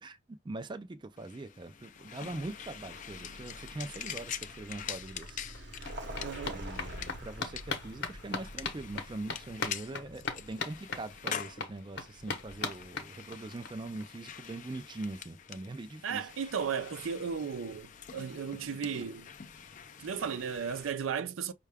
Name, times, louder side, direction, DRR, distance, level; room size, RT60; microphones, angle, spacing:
voice 1, 0.0-5.4 6.5-16.3, right 2 dB, 25° right, 0.4 m, -42 dB
sound 1, 1.2-20.9, left 8 dB, 40° left, 0.4 m, -46 dB
Vehicle, 2.4-11.2, right 1 dB, 60° right, 0.9 m, -47 dB
sound 2, 4.9-5.0 5.2-13.7 14.0-14.1 14.4-14.5 14.7-14.8, left 4 dB, 55° left, 0.9 m, -40 dB
voice 2, 6.2-6.6 16.0-19.3 20.0-21.5, right 6 dB, 90° right, 0.5 m, -35 dB
5.5 x 2.3 x 3.4 m
head